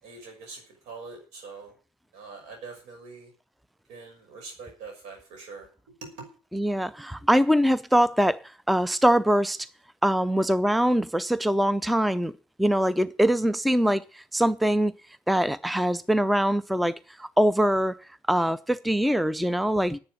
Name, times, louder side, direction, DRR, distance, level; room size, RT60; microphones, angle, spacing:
voice 1, 0.0-1.7 2.1-3.3 3.9-5.7 6.0-6.1, right 4 dB, 65° right, 6.1 m, -43 dB
voice 2, 6.5-8.4 8.7-9.7 10.0-12.3 12.6-14.9 15.3-18.0 18.3-20.0, equal, ahead, 0.6 m, -23 dB
10.5 x 9.1 x 9.0 m
figure-of-eight pair, 50°, 13 cm